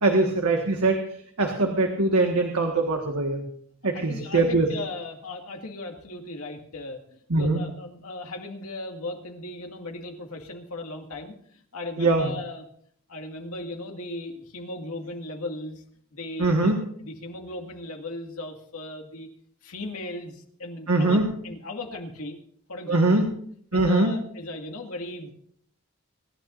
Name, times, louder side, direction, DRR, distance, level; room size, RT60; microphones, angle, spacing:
voice 1, 0.0-3.4 3.8-4.7 7.3-7.6 12.0-12.3 16.4-16.8 20.9-21.3 22.9-23.2 23.7-24.1, right 2 dB, 85° right, 2 dB, 1.7 m, -22 dB
voice 2, 3.9-12.6 13.1-15.8 16.1-16.7 17.0-19.3 19.6-22.4 22.7-23.3 23.7-25.3, left 2 dB, 80° left, 2 dB, 2.1 m, -37 dB
25.0 x 12.0 x 2.6 m, 0.63 s
head